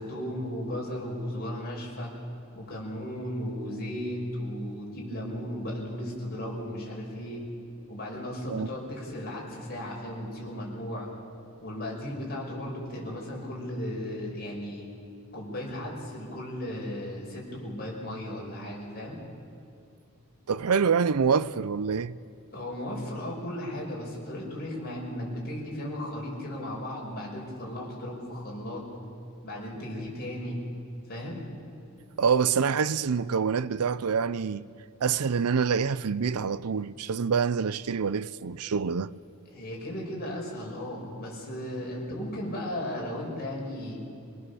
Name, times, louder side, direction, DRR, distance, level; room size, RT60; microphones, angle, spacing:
voice 1, 0.0-2.1 2.5-7.4 7.9-11.1 11.6-14.9 15.3-19.2 22.5-28.8 29.4-30.6 31.1-31.4 39.5-44.0, left 1 dB, 45° left, 5.8 m, -35 dB
voice 2, 20.5-22.2 32.2-34.7 35.0-39.1, right 6 dB, 90° right, 0.5 m, -26 dB
26.5 x 19.0 x 7.0 m
head